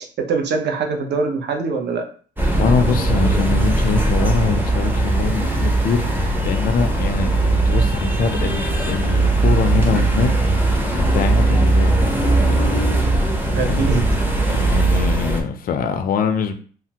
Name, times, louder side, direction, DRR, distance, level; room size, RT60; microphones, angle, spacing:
voice 1, 0.3-2.1 13.5-14.4, right 4 dB, 60° right, 0.7 m, -23 dB
sound 1, 2.4-15.4, right 2 dB, 10° right, 0.6 m, -19 dB
voice 2, 2.6-13.3 13.6-13.9 14.5-16.5, left 5 dB, 45° left, 0.4 m, -24 dB
3.2 x 2.0 x 2.8 m
cardioid pair, 90°, 20 cm